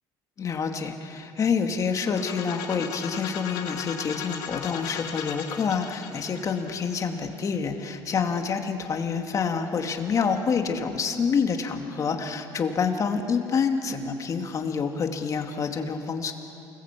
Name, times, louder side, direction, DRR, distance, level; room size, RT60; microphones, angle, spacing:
voice 1, 0.4-16.3, left 6 dB, 40° left, 4 dB, 2.4 m, -27 dB
sound 1, 2.0-7.8, left 8 dB, 80° left, 2.6 m, -37 dB
28.5 x 20.5 x 8.4 m, 2.9 s
cardioid pair, 120°, 9 cm